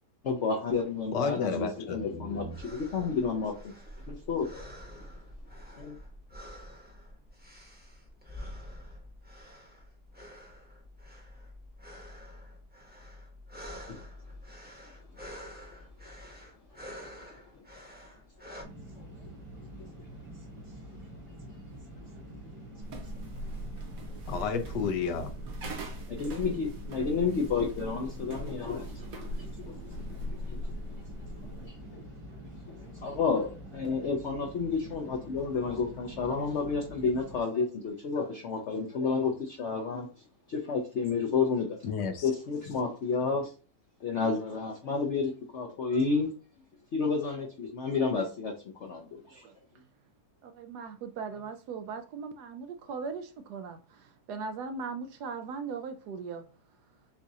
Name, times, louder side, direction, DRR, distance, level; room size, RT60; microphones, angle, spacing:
voice 1, 0.2-3.7 4.1-4.6 5.8-6.0 13.9-14.0 16.9-17.1 19.0-19.1 26.1-30.6 30.9-31.0 31.6-32.0 32.7-41.8 42.2-43.5 44.0-46.3 46.9-48.5 48.8-49.5, left 5 dB, 55° left, 0.9 m, -31 dB
voice 2, 1.1-2.6 24.3-25.3 41.8-42.3, left 5 dB, 80° left, 1.3 m, -32 dB
sound 1, 2.4-18.6, equal, 5° right, 0.9 m, -47 dB
sound 2, 18.6-37.4, equal, 30° right, 0.6 m, -46 dB
sound 3, 22.8-31.7, right 1 dB, 60° right, 1.4 m, -40 dB
voice 3, 50.4-56.4, right 5 dB, 75° right, 1.1 m, -39 dB
7.0 x 2.4 x 2.8 m
omnidirectional pair, 1.8 m